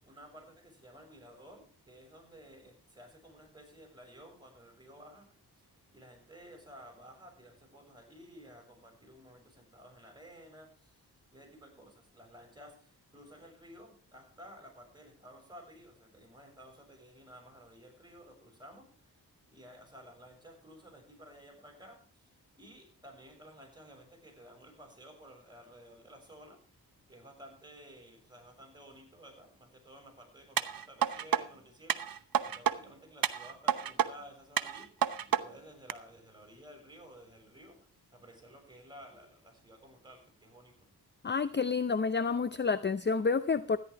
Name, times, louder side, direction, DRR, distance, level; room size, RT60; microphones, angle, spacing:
voice 1, 0.0-5.3 5.6-11.0 11.3-19.1 19.5-26.6 27.1-40.9, equal, 10° right, 2 dB, 6.8 m, -54 dB
sound 1, 30.6-31.4 31.9-32.8 33.2-34.1 34.6-35.4 35.9-36.0, right 9 dB, 60° right, 0.9 m, -29 dB
voice 2, 41.2-43.8, left 5 dB, 30° left, 13 dB, 0.6 m, -29 dB
13.5 x 10.5 x 4.8 m, 0.42 s
wide cardioid pair, 85°, 39 cm